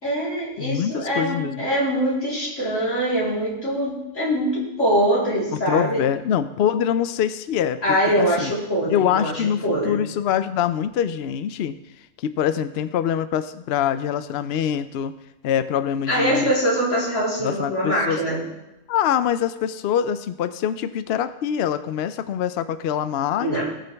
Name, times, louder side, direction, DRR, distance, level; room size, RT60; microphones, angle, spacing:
voice 1, 0.0-6.0 7.8-9.3 9.6-10.0 16.1-18.4 23.4-23.6, equal, 80° left, -7 dB, 4.3 m, -23 dB
voice 2, 0.6-1.7 5.5-8.5 8.9-11.8 12.2-15.2 15.4-16.5 17.4-18.2 18.9-23.6, left 9 dB, 65° left, 12 dB, 0.8 m, -24 dB
19.0 x 6.9 x 3.4 m, 0.98 s
omnidirectional pair, 1.3 m